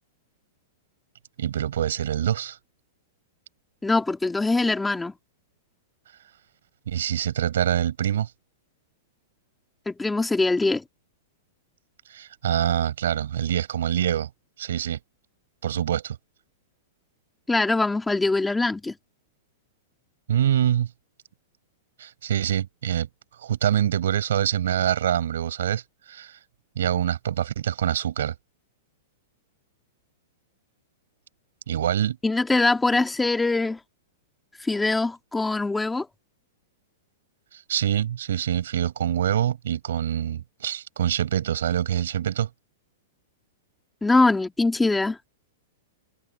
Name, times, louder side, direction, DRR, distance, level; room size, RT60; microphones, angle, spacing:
voice 1, 1.4-2.6 6.9-8.3 12.1-14.3 14.6-15.0 15.6-16.2 20.3-20.9 22.0-23.1 23.3-25.8 26.1-26.4 26.7-28.3 31.7-32.2 37.5-42.5, right 10 dB, 75° right, 6.7 m, -25 dB
voice 2, 3.8-5.1 9.9-10.8 17.5-18.9 32.2-33.8 34.6-36.1 44.0-45.2, left 3 dB, 5° left, 1.8 m, -22 dB
supercardioid pair, 165°, 0 cm